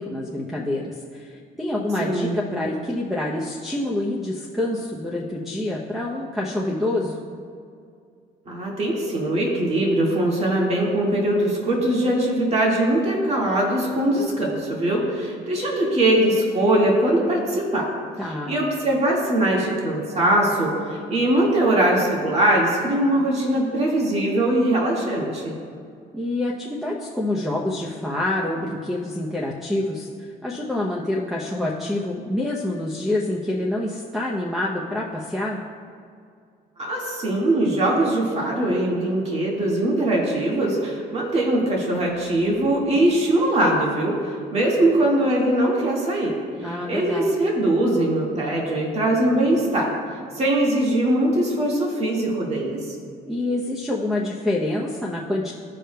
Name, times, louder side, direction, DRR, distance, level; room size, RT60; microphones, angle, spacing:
voice 1, 0.0-7.2 18.2-18.5 26.1-30.1 30.4-35.6 46.6-47.3 53.3-55.5, left 1 dB, ahead, -2 dB, 0.7 m, -27 dB
voice 2, 2.0-2.4 8.5-17.9 18.5-25.5 36.8-46.3 46.6-49.9 50.4-53.0, right 1 dB, 40° right, -3 dB, 1.9 m, -21 dB
15.0 x 5.0 x 2.3 m, 2.3 s
cardioid pair, 110°, 17 cm